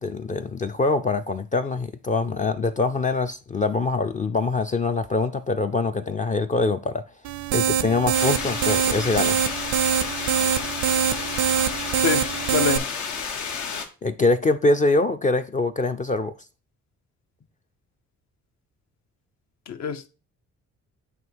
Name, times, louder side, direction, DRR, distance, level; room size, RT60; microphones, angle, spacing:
voice 1, 0.0-7.0 7.5-9.4 14.0-16.3, left 3 dB, 25° left, 0.4 m, -24 dB
sound 1, 7.2-12.8, right 9 dB, 70° right, 0.5 m, -24 dB
sound 2, 8.1-13.9, left 6 dB, 80° left, 1.1 m, -31 dB
voice 2, 12.5-12.9 19.7-20.1, left 7 dB, 65° left, 0.8 m, -25 dB
7.9 x 2.9 x 4.5 m
cardioid pair, 90°, 30 cm